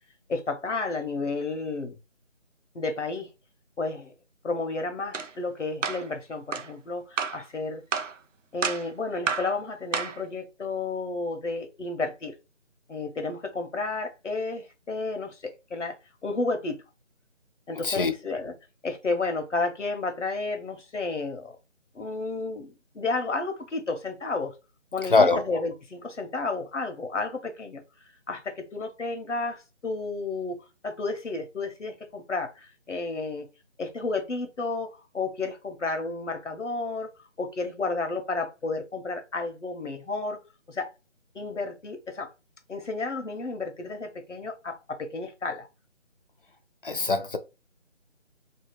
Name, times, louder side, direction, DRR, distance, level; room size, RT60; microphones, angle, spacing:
voice 1, 0.3-2.0 2.7-3.3 3.8-4.1 4.4-7.8 8.5-12.3 12.9-16.0 16.2-16.8 17.7-18.5 18.8-21.6 21.9-24.5 24.9-27.8 28.3-33.5 33.8-37.1 37.4-40.4 40.7-40.9 41.3-42.3 42.7-45.7, left 3 dB, 75° left, 1.0 m, -32 dB
sound 1, 5.1-5.3 5.8-6.1 6.5-6.7 7.2-7.4 7.9-8.2 8.6-8.9 9.3-9.5 9.9-10.2, right 5 dB, 90° right, 0.6 m, -29 dB
voice 2, 17.7-18.1 25.1-25.4 46.8-47.4, left 3 dB, 45° left, 0.5 m, -22 dB
2.8 x 2.7 x 3.0 m
figure-of-eight pair, 165°, 37 cm